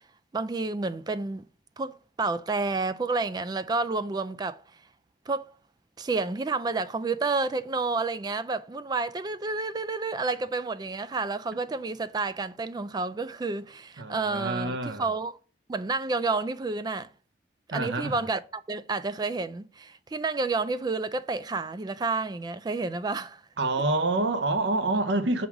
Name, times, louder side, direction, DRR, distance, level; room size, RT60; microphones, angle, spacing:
voice 1, 0.3-1.5 1.8-4.6 5.3-5.5 6.0-15.4 15.7-17.1 17.7-23.4, right 3 dB, 25° right, 0.3 m, -30 dB
voice 2, 14.0-15.1 17.7-18.3 23.6-25.5, right 2 dB, 90° right, 0.7 m, -27 dB
5.9 x 3.9 x 5.9 m
head